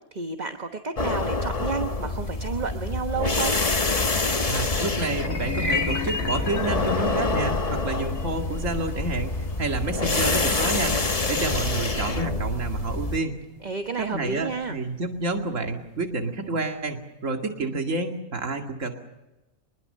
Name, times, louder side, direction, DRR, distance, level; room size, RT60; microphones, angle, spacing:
voice 1, 0.1-3.6 13.6-14.8, right 5 dB, 35° right, 6 dB, 1.3 m, -31 dB
sound 1, 1.0-13.2, left 3 dB, 30° left, 1.2 m, -26 dB
voice 2, 4.4-9.3 9.6-11.0 11.3-13.4 14.0-18.9, right 3 dB, 65° right, 3 dB, 2.6 m, -29 dB
sound 2, 5.2-15.4, left 4 dB, 75° left, 2.3 m, -35 dB
sound 3, 5.6-10.6, left 3 dB, ahead, 1.1 m, -39 dB
24.5 x 21.5 x 6.7 m, 0.99 s
omnidirectional pair, 1.4 m